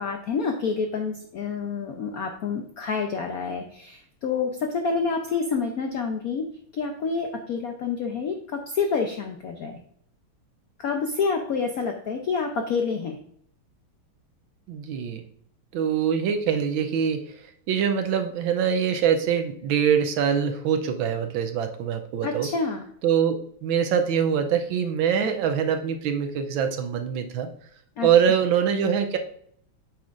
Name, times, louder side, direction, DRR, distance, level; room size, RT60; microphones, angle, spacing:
voice 1, 0.0-6.5 6.7-9.8 10.8-13.2 22.2-22.8 28.0-28.1, left 5 dB, 75° left, 3 dB, 0.8 m, -28 dB
voice 2, 14.7-15.2 15.7-17.3 17.7-22.5 23.0-27.5 28.0-29.2, right 8 dB, 75° right, 7 dB, 1.3 m, -24 dB
8.4 x 5.8 x 2.5 m, 0.65 s
omnidirectional pair, 2.4 m